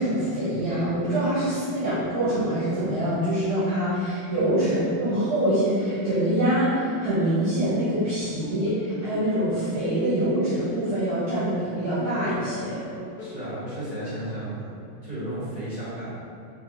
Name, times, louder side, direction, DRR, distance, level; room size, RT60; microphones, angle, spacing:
voice 1, 0.0-12.8, right 1 dB, 75° right, -12 dB, 2.0 m, -25 dB
sound 1, 0.6-3.9 4.4-7.6 8.2-11.5 12.0-15.2, left 1 dB, 85° left, 0.8 m, -40 dB
voice 2, 13.2-14.7 15.0-16.1, right 1 dB, 25° right, -13 dB, 0.9 m, -33 dB
4.6 x 3.2 x 2.9 m, 2.3 s
omnidirectional pair, 2.3 m